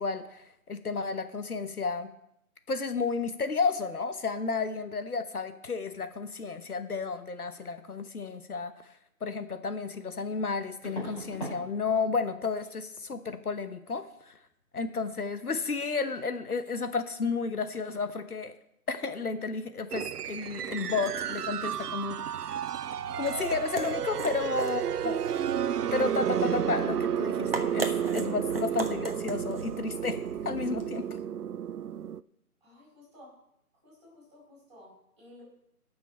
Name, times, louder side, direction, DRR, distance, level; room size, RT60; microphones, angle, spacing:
voice 1, 0.0-2.1 2.7-8.7 9.2-14.4 14.7-18.5 18.9-22.6 23.2-25.2 25.9-30.2 30.4-31.2, left 4 dB, 70° left, 10 dB, 1.0 m, -32 dB
sound 1, 9.3-9.4 10.8-11.6 11.9-12.3 12.6-12.7 15.7-15.8 16.0-16.3 16.6-16.7, right 1 dB, 30° left, 4.9 m, -41 dB
sound 2, 19.9-32.2, right 9 dB, 80° right, 0.5 m, -32 dB
sound 3, 22.9-31.1, right 2 dB, 40° right, 1.0 m, -39 dB
voice 2, 28.2-28.5 32.6-33.4 33.8-35.4, left 1 dB, 20° right, -6 dB, 4.7 m, -54 dB
18.5 x 6.2 x 4.3 m, 0.78 s
figure-of-eight pair, 175°, 46 cm